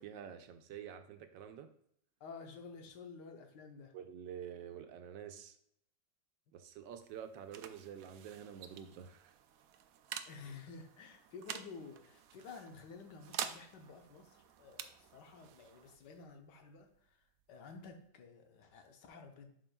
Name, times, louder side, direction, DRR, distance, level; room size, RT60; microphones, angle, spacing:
voice 1, 0.0-1.7 3.9-5.6 6.5-9.3, right 8 dB, 90° right, 8 dB, 1.4 m, -48 dB
voice 2, 2.2-3.9 10.3-16.9 17.5-19.5, left 4 dB, 75° left, 5 dB, 1.5 m, -52 dB
sound 1, 6.7-18.1, right 9 dB, 70° right, 0.8 m, -49 dB
11.0 x 4.5 x 2.2 m, 0.70 s
omnidirectional pair, 1.9 m